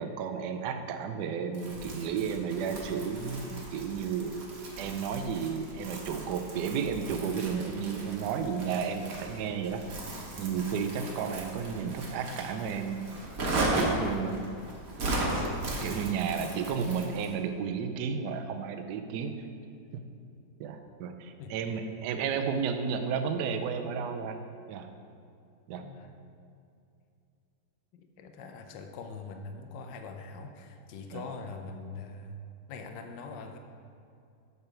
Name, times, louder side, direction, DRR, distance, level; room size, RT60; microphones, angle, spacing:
voice 1, 0.0-4.4 4.8-9.8 10.4-13.0 13.7-14.5 15.8-19.3 19.9-20.0 20.6-24.4 24.7-24.9 25.7-25.8 31.1-31.2, right 6 dB, 75° right, 7 dB, 1.1 m, -32 dB
Crumpling crinkling, 1.5-17.3, right 2 dB, 55° right, 1.5 m, -36 dB
voice 2, 25.7-26.1 27.9-32.4 32.7-33.6, left 4 dB, 75° left, 5 dB, 1.3 m, -43 dB
6.9 x 6.8 x 4.4 m, 2.5 s
omnidirectional pair, 2.0 m